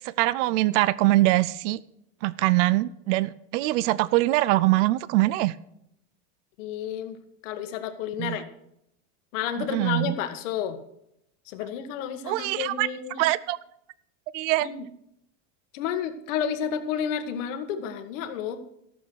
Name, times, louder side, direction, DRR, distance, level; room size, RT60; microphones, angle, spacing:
voice 1, 0.0-1.8 2.2-5.5 8.2-8.4 9.6-10.2 12.3-12.9 13.2-13.6 14.3-14.7, right 18 dB, 70° right, 19 dB, 0.5 m, -23 dB
voice 2, 6.6-7.2 7.4-8.5 9.3-10.8 11.5-13.2 14.6-14.8 15.7-18.6, left 8 dB, 80° left, 7 dB, 1.5 m, -31 dB
14.0 x 7.2 x 6.3 m, 0.78 s
supercardioid pair, 160°, 37 cm